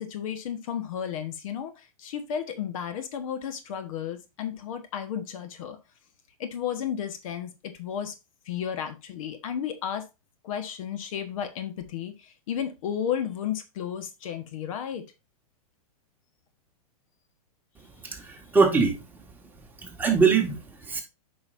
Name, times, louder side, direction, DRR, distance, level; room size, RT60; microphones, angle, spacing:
voice 1, 0.0-5.8 6.4-8.1 8.5-10.1 10.4-15.0, left 9 dB, 65° left, 1.3 m, -33 dB
voice 2, 18.0-19.0 19.8-21.0, right 5 dB, 10° right, 1.7 m, -23 dB
8.4 x 5.5 x 2.6 m
hypercardioid pair, 120°, 19 cm